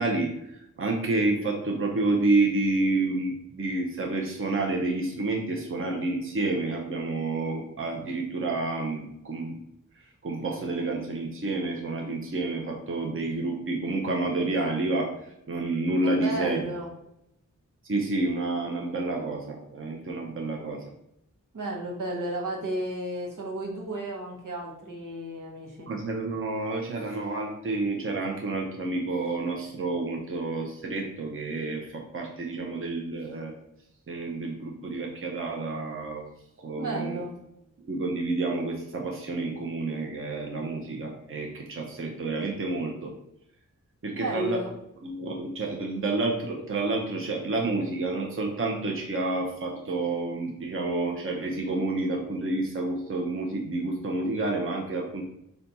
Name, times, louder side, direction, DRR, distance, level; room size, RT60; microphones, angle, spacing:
voice 1, 0.0-9.5 10.2-16.6 17.9-20.8 25.9-33.5 34.1-36.3 36.6-37.2 37.9-43.1 44.0-44.6 45.0-55.2, right 2 dB, 40° right, 0 dB, 0.6 m, -29 dB
voice 2, 16.0-16.9 21.5-25.9 36.8-37.3 44.1-44.7, right 1 dB, 80° right, -1 dB, 1.0 m, -33 dB
4.0 x 2.3 x 4.0 m, 0.81 s
wide cardioid pair, 95°, 32 cm